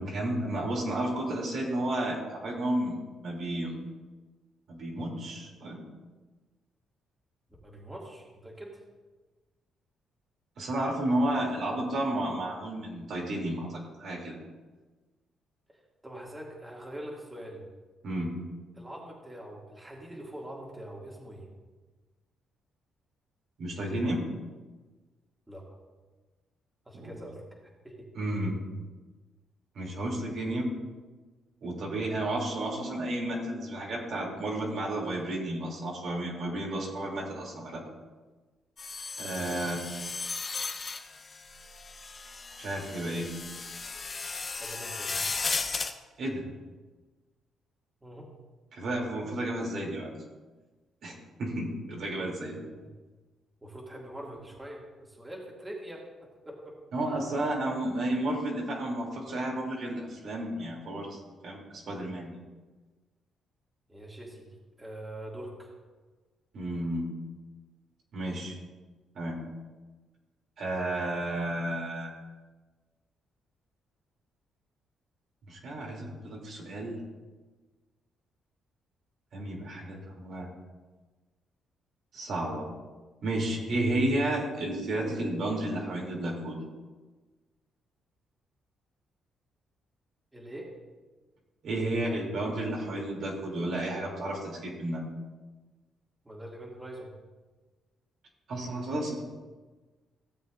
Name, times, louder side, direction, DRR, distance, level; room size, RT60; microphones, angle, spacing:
voice 1, 0.0-3.0 3.2-3.8 4.7-5.8 10.6-14.4 18.0-18.3 23.6-24.2 26.9-27.1 28.1-28.5 29.7-30.7 31.6-37.8 39.2-39.8 42.6-43.3 46.2-46.4 48.7-50.2 51.0-52.6 56.9-61.2 61.4-62.3 66.5-67.1 68.1-68.6 69.1-69.4 70.6-72.1 75.5-77.0 79.3-80.5 82.1-82.7 83.2-86.6 91.6-95.0 98.5-99.2, right 1 dB, 65° right, -2 dB, 2.8 m, -32 dB
voice 2, 7.6-8.8 16.0-17.6 18.8-21.5 25.5-25.7 26.9-27.4 27.8-28.1 31.8-32.1 39.2-39.6 44.6-45.2 48.0-48.3 52.4-52.9 53.6-56.8 63.9-64.5 64.8-65.7 90.3-90.7 96.2-97.1, right 1 dB, 15° right, -3 dB, 2.2 m, -43 dB
sound 1, 38.8-45.9, left 4 dB, 35° left, 0.9 m, -36 dB
16.0 x 7.4 x 2.5 m, 1.3 s
cardioid pair, 90°, 0 cm